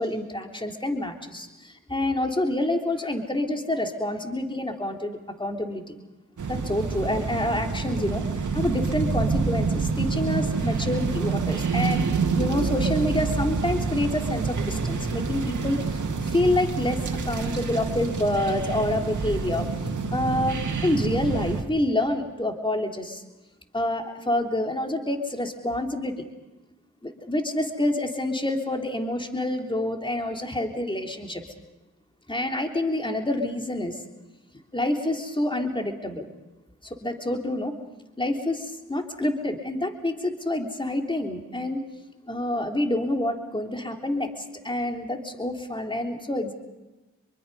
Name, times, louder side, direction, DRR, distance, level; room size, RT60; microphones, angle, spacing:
voice 1, 0.0-5.9 6.5-8.2 8.5-12.0 12.3-19.7 20.1-20.6 20.8-23.2 23.7-26.3 27.0-31.4 32.3-34.0 34.7-36.3 36.8-37.7 38.2-41.8 42.3-46.5, left 1 dB, 15° left, 3 dB, 3.2 m, -27 dB
sound 1, 6.4-21.6, right 4 dB, 70° right, 2.3 m, -27 dB
25.5 x 23.0 x 5.5 m, 1.1 s
cardioid pair, 45°, 31 cm